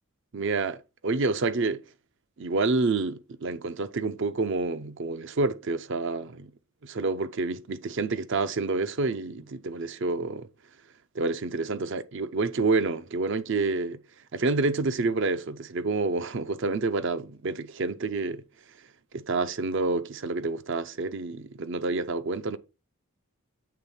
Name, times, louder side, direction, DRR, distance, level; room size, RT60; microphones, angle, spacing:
voice 1, 0.3-1.8 2.4-6.5 6.8-10.5 11.1-14.0 14.3-18.4 19.1-22.6, right 3 dB, 60° right, 0.6 m, -28 dB
8.6 x 3.5 x 5.6 m
head